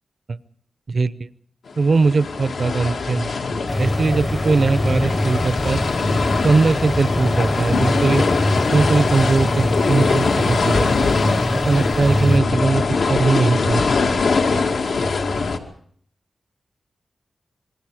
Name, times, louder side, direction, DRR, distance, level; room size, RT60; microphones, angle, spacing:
voice 1, 0.9-1.3 1.8-3.3 3.8-5.8 6.4-8.2 8.7-10.9 11.6-13.9, right 4 dB, 55° right, 15 dB, 0.8 m, -20 dB
sound 1, 1.7-15.6, left 4 dB, 85° left, 2.3 m, -22 dB
sound 2, 3.7-12.4, left 1 dB, 15° left, 0.8 m, -24 dB
27.0 x 21.0 x 5.0 m, 0.63 s
wide cardioid pair, 110°, 0 cm